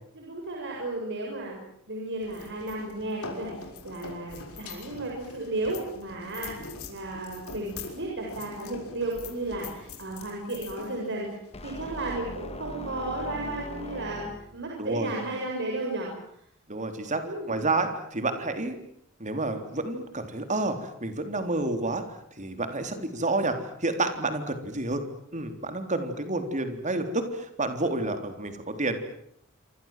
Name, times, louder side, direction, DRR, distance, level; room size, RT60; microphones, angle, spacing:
voice 1, 0.2-1.6 1.9-3.5 3.8-6.6 6.9-11.3 11.6-14.3 14.5-16.1 17.2-17.6, right 2 dB, 55° right, -1 dB, 7.4 m, -33 dB
sound 1, 2.2-12.2, left 4 dB, 75° left, 6.3 m, -43 dB
sound 2, 11.5-14.7, left 1 dB, 30° left, 2.0 m, -40 dB
voice 2, 14.8-15.2 16.7-18.8 19.2-25.1 25.3-29.0, right 2 dB, 35° right, 7 dB, 3.8 m, -29 dB
28.0 x 25.5 x 7.7 m, 0.71 s
head